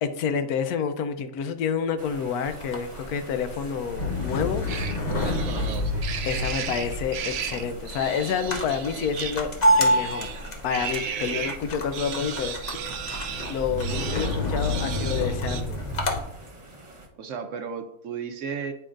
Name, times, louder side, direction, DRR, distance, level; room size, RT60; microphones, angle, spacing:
voice 1, 0.0-4.7 6.3-9.5 9.8-10.3 10.6-12.6 13.5-15.8, left 7 dB, 80° left, 9 dB, 1.1 m, -28 dB
sound 1, 2.0-17.1, right 1 dB, 30° right, 1.1 m, -45 dB
sound 2, 2.5-16.2, left 1 dB, 35° left, 0.8 m, -28 dB
sound 3, 4.7-11.6 11.9-15.6, right 7 dB, 85° right, 1.2 m, -35 dB
voice 2, 5.3-6.0 17.2-18.7, right 6 dB, 65° right, 7 dB, 0.9 m, -34 dB
9.8 x 4.5 x 2.5 m, 0.76 s
omnidirectional pair, 1.6 m